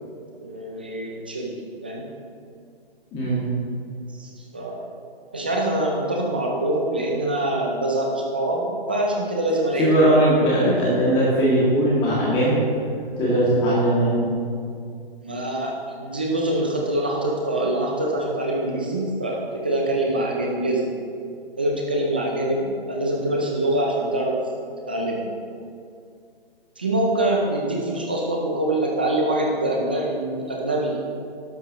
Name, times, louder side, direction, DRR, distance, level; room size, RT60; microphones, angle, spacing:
voice 1, 0.4-1.6 1.8-2.0 4.1-4.8 5.3-10.1 15.2-20.9 21.6-24.4 24.9-25.3 26.8-31.0, right 1 dB, 10° right, -1 dB, 0.4 m, -24 dB
voice 2, 9.8-12.6 13.2-14.3, right 1 dB, 15° left, -8 dB, 2.1 m, -19 dB
12.0 x 12.0 x 2.9 m, 2.3 s
hypercardioid pair, 150°, 31 cm